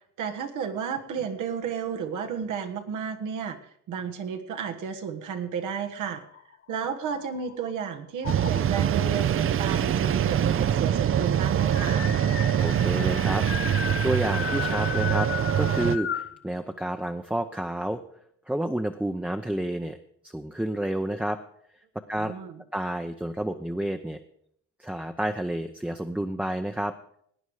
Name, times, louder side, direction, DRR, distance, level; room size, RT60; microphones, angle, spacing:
voice 1, 0.2-3.6 3.9-6.2 6.7-12.1 22.2-22.6, right 7 dB, 80° right, 5 dB, 1.5 m, -32 dB
sound 1, 6.2-7.7 8.2-8.9 9.9-10.0 10.2-10.3 10.6-16.4, left 10 dB, 45° left, 0.6 m, -35 dB
sound 2, 8.3-16.0, right 10 dB, 45° right, 0.6 m, -24 dB
voice 2, 12.6-15.3 15.6-18.0 18.5-20.0 20.2-21.4 22.1-22.3 22.7-24.2 24.8-26.9, right 1 dB, 5° right, 5 dB, 0.7 m, -30 dB
18.0 x 9.3 x 4.9 m, 0.69 s
cardioid pair, 90°, 30 cm